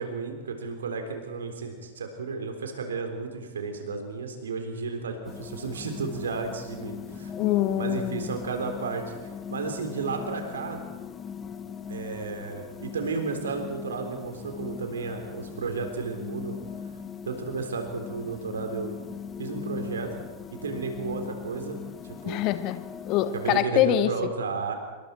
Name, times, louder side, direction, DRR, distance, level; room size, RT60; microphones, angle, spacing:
voice 1, 0.0-7.3 7.8-9.0 9.5-10.8 11.9-16.6 17.3-19.0 19.4-20.2 20.6-21.8 22.0-22.4 23.3-24.7, right 4 dB, 70° right, 5 dB, 3.5 m, -33 dB
sound 1, 5.2-23.6, left 7 dB, 20° left, 1.2 m, -39 dB
voice 2, 7.4-8.4 22.2-24.1, left 13 dB, 40° left, 12 dB, 1.2 m, -25 dB
26.5 x 23.0 x 4.5 m, 1.3 s
figure-of-eight pair, 90°, 0 cm